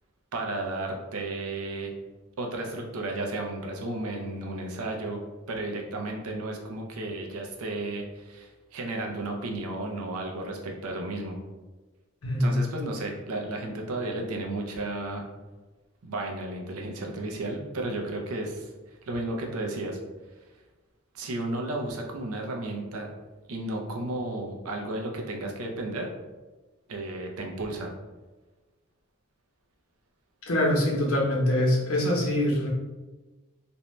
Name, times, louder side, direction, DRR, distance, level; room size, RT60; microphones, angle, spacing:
voice 1, 0.3-1.9 2.4-5.2 5.5-11.4 12.4-15.3 16.0-18.7 19.0-20.0 21.1-23.1 23.5-26.1 26.9-27.9, right 2 dB, 90° right, 1 dB, 0.5 m, -33 dB
voice 2, 12.2-12.6 30.5-32.7, left 1 dB, 80° left, -2 dB, 0.8 m, -24 dB
2.6 x 2.1 x 3.0 m, 1.2 s
head